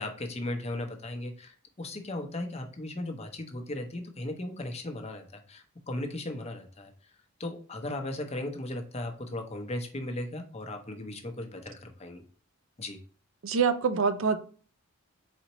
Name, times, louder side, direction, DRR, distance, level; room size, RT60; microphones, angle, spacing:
voice 1, 0.0-6.9 7.4-12.2 12.8-13.0, left 1 dB, 30° left, 0.7 m, -37 dB
voice 2, 13.4-14.4, right 5 dB, 65° right, 0.5 m, -25 dB
4.3 x 4.2 x 2.9 m
head